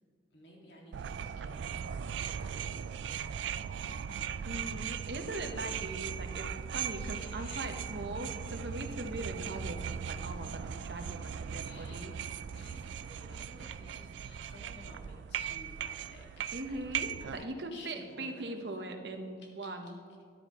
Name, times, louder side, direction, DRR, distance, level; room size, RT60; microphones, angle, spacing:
voice 1, 0.3-4.5 5.5-5.6 6.9-7.9 10.7-12.1 12.5-16.8 17.2-18.5 19.4-19.9, left 1 dB, 75° left, -1 dB, 2.2 m, -55 dB
sound 1, 0.9-17.4, right 8 dB, 80° right, 0.3 m, -39 dB
voice 2, 4.4-12.1 16.5-17.1 17.4-19.9, right 1 dB, 65° right, 5 dB, 1.1 m, -40 dB
13.5 x 10.5 x 3.1 m, 2.1 s
head